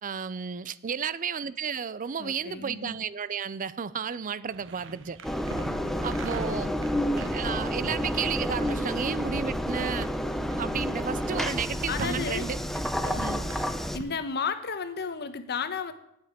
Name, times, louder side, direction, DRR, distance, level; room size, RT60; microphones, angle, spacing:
voice 1, 0.0-5.2 6.0-6.7 7.1-10.1 10.6-12.6 13.1-13.5, right 6 dB, 35° right, 0.5 m, -32 dB
voice 2, 2.2-3.0 6.5-7.1 11.9-12.4 13.9-15.9, left 5 dB, 50° left, 1.1 m, -33 dB
sound 1, 4.5-14.2, right 3 dB, 60° right, 1.0 m, -43 dB
Engine, 5.2-14.0, equal, ahead, 0.7 m, -30 dB
9.6 x 8.8 x 9.8 m
head